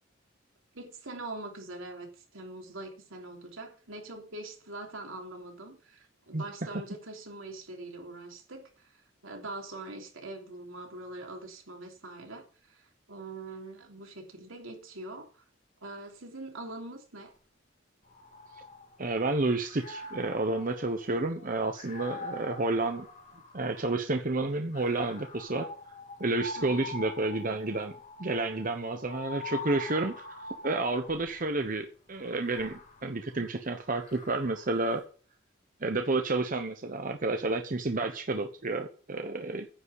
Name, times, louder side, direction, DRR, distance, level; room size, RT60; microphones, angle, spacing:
voice 1, 0.7-15.4 15.8-17.3 26.6-26.9, right 2 dB, 85° right, 3.2 m, -43 dB
sound 1, 18.1-19.3 19.6-24.0 24.7-31.4 32.2-34.8, left 3 dB, 40° left, 2.0 m, -44 dB
voice 2, 19.0-23.1 23.5-25.7 26.2-27.9 28.2-30.3 30.6-35.0 35.8-39.7, right 2 dB, 40° right, 1.0 m, -30 dB
9.9 x 5.6 x 8.3 m
head